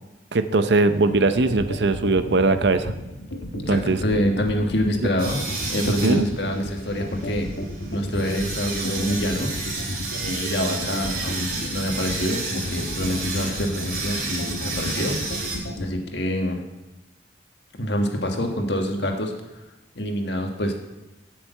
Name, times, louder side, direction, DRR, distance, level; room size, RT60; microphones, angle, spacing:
voice 1, 0.3-2.9 3.5-4.0 6.0-6.3, right 3 dB, 65° right, 11 dB, 0.6 m, -20 dB
sound 1, 1.1-15.8, left 1 dB, 85° left, 1.3 m, -32 dB
voice 2, 3.6-5.4 5.7-7.5 7.9-9.5 10.2-15.2 15.8-16.6 17.8-19.3 19.9-20.7, equal, 65° left, 3 dB, 1.6 m, -26 dB
sound 2, 5.2-15.6, right 3 dB, 50° right, 2.6 m, -32 dB
7.9 x 6.5 x 8.2 m, 1.0 s
head